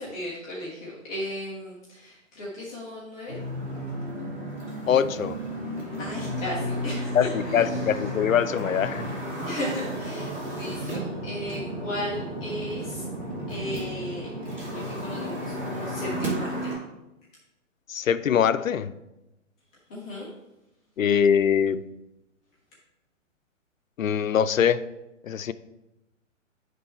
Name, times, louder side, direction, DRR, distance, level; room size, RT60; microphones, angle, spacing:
voice 1, 0.0-3.4 6.0-8.0 9.4-13.1 13.5-14.3 14.7-16.7 19.9-20.3, left 1 dB, 5° left, -7 dB, 0.3 m, -36 dB
sound 1, 3.3-16.8, equal, 20° right, 2.6 m, -33 dB
voice 2, 4.9-5.4 7.1-9.1 17.9-18.9 21.0-21.8 24.0-24.8 25.2-25.5, left 8 dB, 85° left, 14 dB, 0.5 m, -23 dB
9.6 x 3.3 x 4.4 m, 0.95 s
figure-of-eight pair, 125°, 39 cm